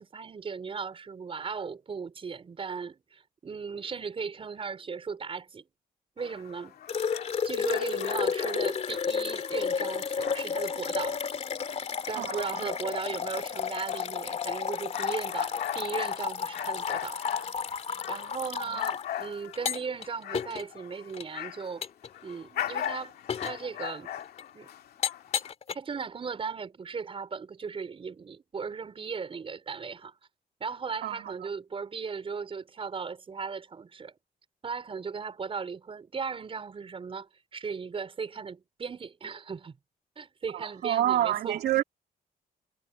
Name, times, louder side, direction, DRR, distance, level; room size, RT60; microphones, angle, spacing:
voice 1, 0.0-5.6 6.2-6.8 7.4-11.2 12.1-17.2 18.1-21.8 22.2-24.1 24.5-24.7 25.7-30.1 30.6-34.2 34.6-39.8 40.2-41.6, right 5 dB, 35° right, 5.3 m, -37 dB
sound 1, 6.2-10.8 11.2-21.8 22.1-25.5, left 11 dB, 80° left, 2.2 m, -40 dB
sound 2, 6.9-19.0 19.5-20.0 20.3-20.6 21.1-21.2 21.8-22.1 22.6-22.8 23.3-23.6 24.4-24.5 25.0-25.7, left 6 dB, 45° left, 2.5 m, -32 dB
voice 2, 12.2-12.7 18.6-18.7 31.0-31.2 40.5-41.8, right 12 dB, 85° right, 3.8 m, -28 dB
cardioid pair, 125°, 16 cm